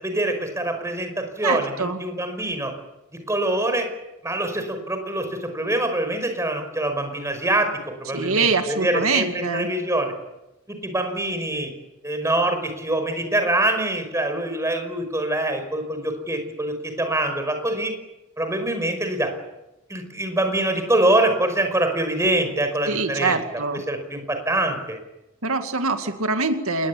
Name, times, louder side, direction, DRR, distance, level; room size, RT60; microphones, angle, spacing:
voice 1, 0.0-2.7 3.3-3.9 4.2-10.1 10.7-11.7 12.0-17.9 18.4-19.3 19.9-23.4 23.9-25.0, right 1 dB, 15° right, 6 dB, 5.3 m, -24 dB
voice 2, 1.4-2.0 8.1-9.7 22.9-23.8 25.4-26.9, right 4 dB, 80° right, 6 dB, 2.3 m, -24 dB
27.5 x 21.5 x 8.6 m, 0.97 s
head